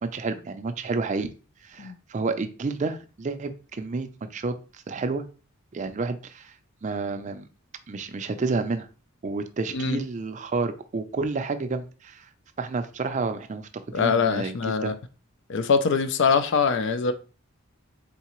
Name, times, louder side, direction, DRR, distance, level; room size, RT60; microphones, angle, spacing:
voice 1, 0.0-1.3 1.6-5.2 5.7-6.5 6.8-7.5 7.9-8.9 9.2-12.3 12.6-13.7 14.0-14.9, right 3 dB, 35° right, 0.4 m, -30 dB
voice 2, 13.9-14.9 15.5-17.1, left 5 dB, 55° left, 0.4 m, -23 dB
4.0 x 3.6 x 3.0 m
head